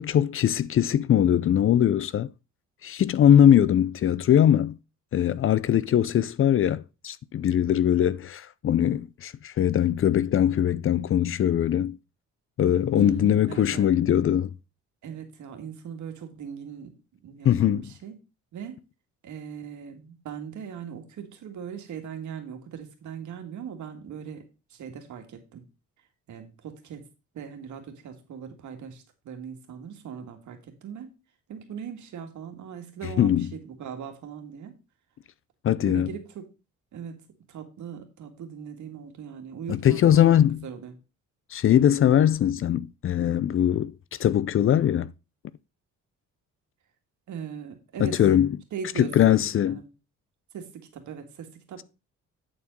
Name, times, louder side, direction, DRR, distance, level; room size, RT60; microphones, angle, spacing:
voice 1, 0.0-2.3 2.8-4.8 5.1-12.0 12.6-14.5 17.4-17.9 33.2-33.5 35.6-36.1 39.7-40.7 41.5-43.9 44.2-45.1 48.0-48.5 49.0-49.8, left 10 dB, 45° left, 0.5 m, -21 dB
voice 2, 12.9-13.9 15.0-16.9 17.2-18.2 18.5-18.8 19.2-24.4 24.7-25.6 26.3-27.0 27.3-31.2 31.5-34.7 35.8-36.4 36.9-37.2 37.5-40.3 40.6-40.9 47.3-48.2 48.7-49.4 49.7-49.8 50.5-51.8, right 7 dB, 75° right, 1.9 m, -39 dB
8.7 x 4.3 x 5.2 m
cardioid pair, 90°, 30 cm